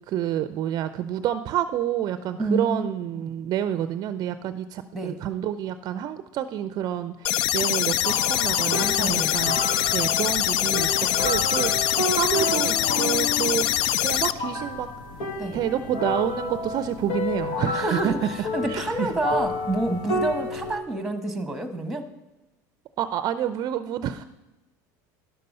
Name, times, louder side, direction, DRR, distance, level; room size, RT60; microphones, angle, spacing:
voice 1, 0.1-9.6 9.9-14.9 15.5-18.1 18.7-19.1 23.0-24.2, right 10 dB, 45° right, 11 dB, 0.5 m, -28 dB
voice 2, 2.4-2.9 3.1-3.2 4.9-5.2 9.0-9.3 15.4-15.6 17.7-22.1, right 2 dB, 5° right, 8 dB, 1.2 m, -28 dB
sound 1, 7.2-14.3, left 13 dB, 60° left, 0.4 m, -24 dB
sound 2, 8.0-20.7, left 2 dB, 80° left, 1.8 m, -31 dB
11.0 x 6.7 x 5.4 m, 1.1 s
supercardioid pair, 120°, 9 cm